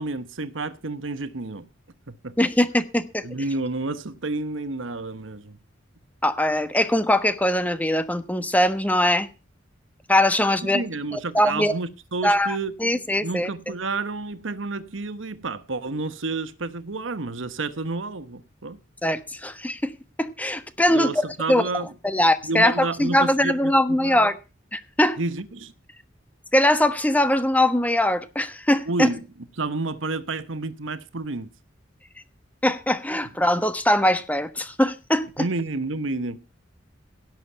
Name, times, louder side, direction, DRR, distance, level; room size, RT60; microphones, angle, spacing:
voice 1, 0.0-1.7 2.1-2.4 3.2-5.6 10.6-12.7 13.2-18.8 20.9-21.9 22.4-24.3 25.2-25.7 28.8-29.2 29.6-31.5 35.4-36.6, right 3 dB, 80° right, 1.1 m, -30 dB
voice 2, 2.4-3.2 6.2-9.3 10.1-10.8 11.1-11.8 12.2-13.5 19.0-19.9 20.2-21.7 22.0-24.4 24.7-25.2 26.5-29.1 32.6-35.5, left 1 dB, 10° left, 1.2 m, -21 dB
17.5 x 7.1 x 5.7 m
head